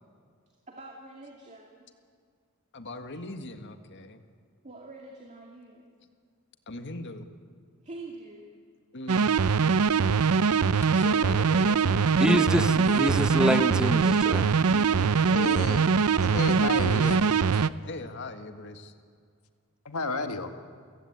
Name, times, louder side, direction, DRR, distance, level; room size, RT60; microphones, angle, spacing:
voice 1, 0.7-1.8 4.6-5.8 7.8-8.5 14.7-15.6, right 2 dB, 35° right, 0 dB, 2.3 m, -45 dB
voice 2, 2.7-4.2 6.7-7.3 8.9-9.4 10.9-13.0 17.8-18.9, left 2 dB, 55° left, 7 dB, 1.7 m, -40 dB
sound 1, 9.1-17.7, right 5 dB, 75° right, 0.6 m, -23 dB
voice 3, 12.2-14.5, equal, 5° right, 8 dB, 1.1 m, -26 dB
voice 4, 15.3-15.9 16.2-17.6 19.9-20.5, left 3 dB, 70° left, 7 dB, 1.7 m, -32 dB
29.5 x 16.0 x 8.7 m, 2.1 s
head